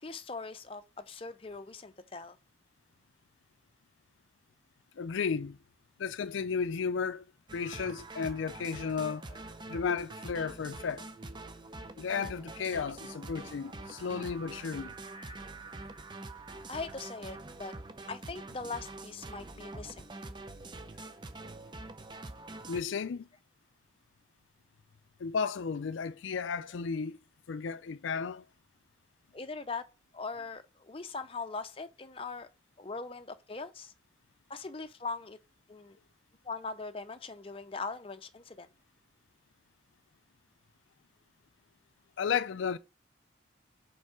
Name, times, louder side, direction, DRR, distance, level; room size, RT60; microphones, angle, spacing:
voice 1, 0.0-2.4 16.7-17.8 18.1-20.1 29.3-29.9 30.1-32.5 32.8-33.9 34.5-35.4 35.7-36.0 36.4-38.7, left 4 dB, 30° left, 0.6 m, -41 dB
voice 2, 5.0-5.6 6.0-7.3 7.5-9.3 9.7-11.0 12.0-14.9 22.7-23.3 25.2-27.2 27.5-28.4 42.2-42.8, left 6 dB, 80° left, 0.4 m, -33 dB
sound 1, 7.5-22.8, right 2 dB, 25° right, 0.6 m, -45 dB
5.3 x 4.6 x 4.7 m
head